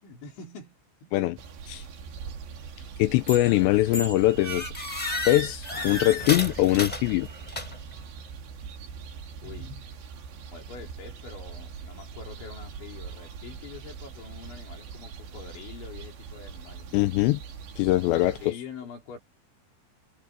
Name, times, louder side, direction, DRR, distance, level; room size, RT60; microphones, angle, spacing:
voice 1, 0.0-1.4 3.5-3.7 5.7-5.9 9.4-9.7 10.5-17.1 18.1-19.2, left 5 dB, 65° left, 7.0 m, -45 dB
sound 1, 1.4-18.5, right 6 dB, 65° right, 5.1 m, -42 dB
voice 2, 3.0-4.7 5.3-7.3 16.9-17.4 17.8-18.5, left 17 dB, 85° left, 2.6 m, -22 dB
sound 2, 3.3-3.6 3.9-8.0, left 1 dB, 10° left, 5.5 m, -33 dB
omnidirectional pair, 5.7 m